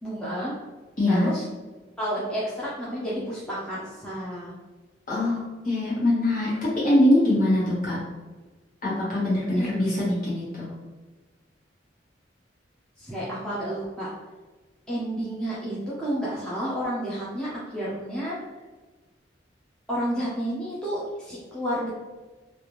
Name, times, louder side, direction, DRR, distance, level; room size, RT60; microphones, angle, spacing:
voice 1, 0.0-0.5 1.1-1.4 2.0-4.6 9.5-9.8 13.0-14.1 14.9-18.4 19.9-21.9, equal, 5° left, -9 dB, 0.6 m, -30 dB
voice 2, 1.0-1.3 5.1-8.0 8.8-10.7, left 1 dB, 50° left, -7 dB, 1.4 m, -23 dB
3.3 x 2.5 x 3.0 m, 1.3 s
head